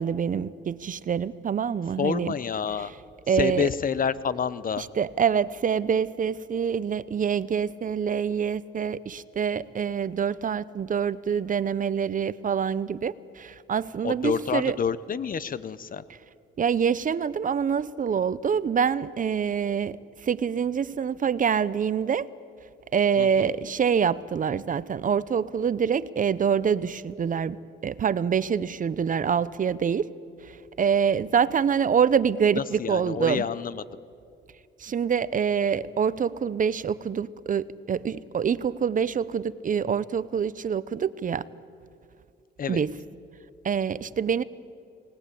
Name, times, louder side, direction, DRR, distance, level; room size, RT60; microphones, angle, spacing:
voice 1, 0.0-2.3 3.3-3.7 4.8-14.8 16.6-22.3 22.9-27.6 27.8-30.1 30.4-33.4 34.8-41.4 42.7-42.9 43.6-44.4, right 7 dB, 40° right, 17 dB, 0.8 m, -26 dB
voice 2, 2.0-2.9 3.3-4.8 14.0-16.0 23.2-23.5 32.5-33.8 42.6-42.8, left 7 dB, 45° left, 16 dB, 0.9 m, -28 dB
28.5 x 19.5 x 8.5 m, 2.4 s
cardioid pair, 90°, 20 cm